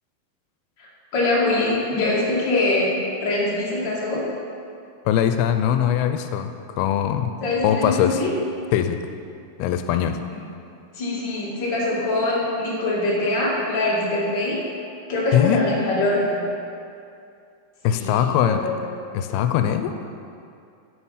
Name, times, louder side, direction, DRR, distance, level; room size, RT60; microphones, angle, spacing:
voice 1, 0.8-2.9 3.2-4.2 7.4-8.3 10.9-14.6 15.1-16.4 17.9-18.9, left 2 dB, 35° left, -6 dB, 2.4 m, -23 dB
voice 2, 5.1-6.5 6.8-7.3 7.6-8.2 8.7-9.0 9.6-10.2 15.3-15.6 17.8-18.7 19.1-19.9, left 10 dB, 90° left, 8 dB, 2.5 m, -21 dB
11.5 x 6.6 x 5.6 m, 2.5 s
omnidirectional pair, 4.4 m